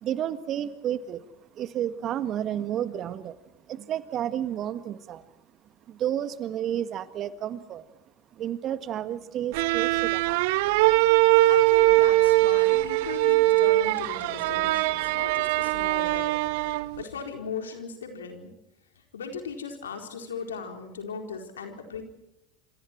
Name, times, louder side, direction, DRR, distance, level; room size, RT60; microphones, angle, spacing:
voice 1, 0.0-1.3 1.5-3.4 3.7-5.3 5.9-7.9 8.4-10.4, right 10 dB, 45° right, 12 dB, 1.7 m, -31 dB
sound 1, 9.5-17.0, right 19 dB, 65° right, 0.8 m, -22 dB
voice 2, 11.2-18.5 19.0-22.0, left 5 dB, 80° left, 4 dB, 4.4 m, -38 dB
27.5 x 27.5 x 4.6 m, 0.90 s
figure-of-eight pair, 75°, 0 cm